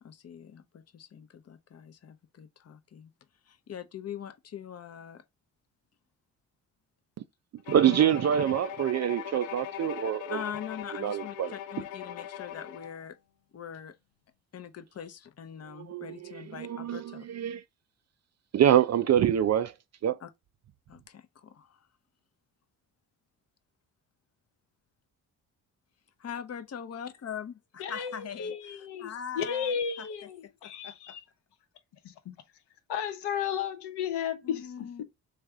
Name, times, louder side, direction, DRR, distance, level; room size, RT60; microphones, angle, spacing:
voice 1, 0.0-3.1 3.5-5.2 10.3-13.2 13.5-13.9 14.5-17.3 20.2-20.3 20.9-21.9 26.2-30.1 30.4-31.2 34.4-35.0, left 8 dB, 35° left, 0.7 m, -42 dB
Bowed string instrument, 7.6-13.0, left 10 dB, 85° left, 0.6 m, -40 dB
voice 2, 7.7-10.4 11.0-11.5 15.7-17.6 18.5-19.7 20.0-20.2, right 10 dB, 40° right, 0.4 m, -25 dB
voice 3, 27.8-28.1 28.4-31.2 32.0-32.4 32.9-35.0, left 8 dB, 60° left, 1.0 m, -34 dB
3.4 x 3.3 x 3.5 m
hypercardioid pair, 45°, 46 cm